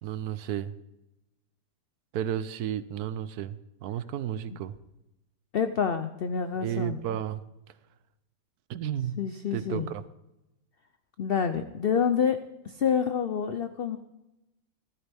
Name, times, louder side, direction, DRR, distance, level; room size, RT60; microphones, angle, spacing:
voice 1, 0.0-0.7 2.1-4.8 6.6-7.4 8.7-9.2 9.5-10.0, right 10 dB, 70° right, 15 dB, 1.1 m, -32 dB
voice 2, 5.5-7.0 9.2-9.9 11.2-12.4 12.6-14.0, left 7 dB, 90° left, 9 dB, 0.5 m, -27 dB
14.5 x 13.0 x 3.5 m, 0.93 s
omnidirectional pair, 1.8 m